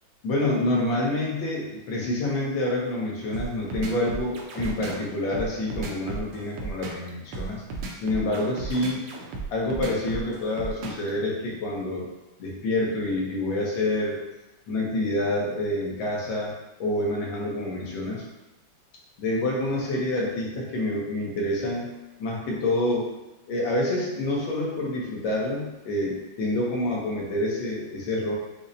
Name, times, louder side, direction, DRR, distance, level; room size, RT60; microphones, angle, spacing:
voice 1, 0.2-7.6 8.0-9.1 9.5-12.1 12.4-14.2 14.7-16.5 16.8-18.2 19.2-21.9 22.2-23.1 23.5-28.3, left 1 dB, 75° left, -3 dB, 1.6 m, -27 dB
sound 1, 3.3-11.1, right 4 dB, 75° right, 1.2 m, -34 dB
5.5 x 2.1 x 2.5 m, 1.0 s
omnidirectional pair, 2.2 m